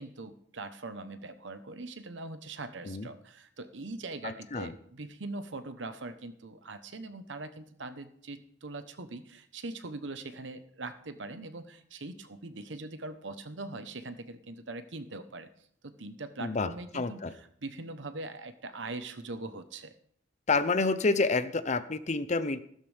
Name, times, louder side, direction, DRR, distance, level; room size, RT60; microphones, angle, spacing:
voice 1, 0.0-15.5 15.8-19.9, right 2 dB, 80° right, 10 dB, 1.1 m, -42 dB
voice 2, 4.2-4.7 16.4-17.3 20.5-22.6, left 3 dB, 40° left, 12 dB, 0.7 m, -29 dB
15.0 x 12.5 x 3.5 m, 0.67 s
head